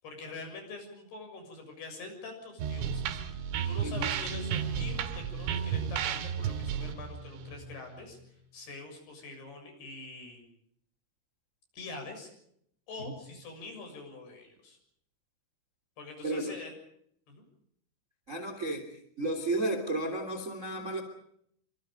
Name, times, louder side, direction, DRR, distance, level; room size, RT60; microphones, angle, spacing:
voice 1, 0.0-10.4 11.7-12.3 12.9-14.8 16.0-16.7 17.3-17.4, left 3 dB, 55° left, 5 dB, 8.8 m, -45 dB
sound 1, 2.6-8.2, right 8 dB, 80° right, 4.4 m, -33 dB
voice 2, 3.8-4.1 13.0-13.1 16.2-16.5 18.3-18.9 19.2-21.0, right 2 dB, 20° right, 7 dB, 2.6 m, -32 dB
28.0 x 26.0 x 5.2 m, 0.71 s
omnidirectional pair, 5.7 m